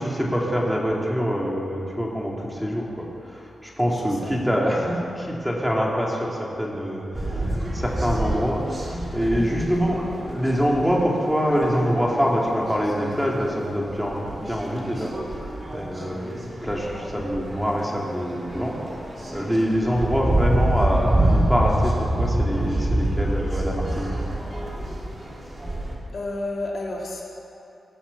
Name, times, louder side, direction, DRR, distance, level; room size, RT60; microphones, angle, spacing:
voice 1, 0.0-18.7 19.3-24.1, equal, ahead, -3 dB, 2.8 m, -25 dB
sound 1, 7.1-26.0, right 1 dB, 35° right, 2.9 m, -27 dB
voice 2, 26.1-27.2, left 2 dB, 60° left, -3 dB, 2.5 m, -30 dB
18.5 x 7.1 x 7.3 m, 2.8 s
cardioid pair, 65°, 0 cm